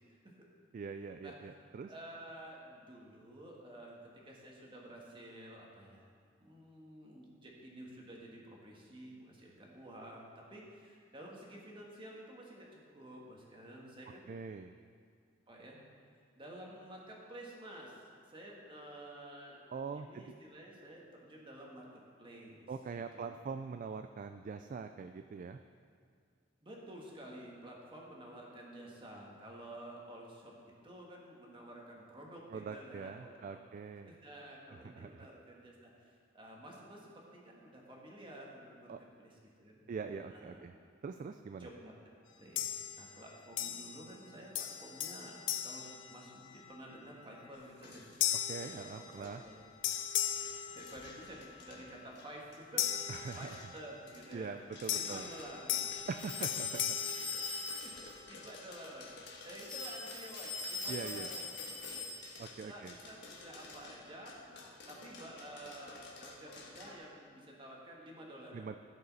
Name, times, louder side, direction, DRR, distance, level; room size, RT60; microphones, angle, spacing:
voice 1, 0.7-1.9 14.3-14.7 19.7-20.2 22.7-25.6 32.5-34.2 34.7-35.3 38.9-39.0 39.9-40.7 41.0-41.7 48.5-49.4 53.1-53.6 54.3-55.3 56.1-57.2 60.9-61.3 62.4-62.9 68.5-68.8, right 5 dB, 45° right, 8 dB, 0.3 m, -43 dB
voice 2, 1.9-6.1 6.4-14.3 15.5-15.8 16.3-18.0 18.3-19.6 19.9-22.7 23.1-23.3 26.6-30.6 30.8-33.6 34.0-39.8 40.2-40.6 41.6-42.0 42.4-45.4 45.6-48.4 48.8-49.6 50.4-52.8 53.3-54.6 54.9-56.0 56.4-56.5 57.2-57.4 57.8-57.9 58.3-64.4 64.9-68.8, right 1 dB, 25° right, -2 dB, 1.6 m, -51 dB
sound 1, 42.6-43.2 43.6-44.3 44.6-46.7 47.2-47.5 48.2-49.5 49.8-51.5 52.8-53.9 54.9-58.1, left 11 dB, 85° left, 0.7 m, -38 dB
sound 2, 47.5-67.0, left 3 dB, 65° left, 1.4 m, -54 dB
sound 3, 56.2-58.2 59.6-62.5, left 3 dB, 45° left, 2.5 m, -41 dB
15.0 x 5.4 x 4.0 m, 2.1 s
head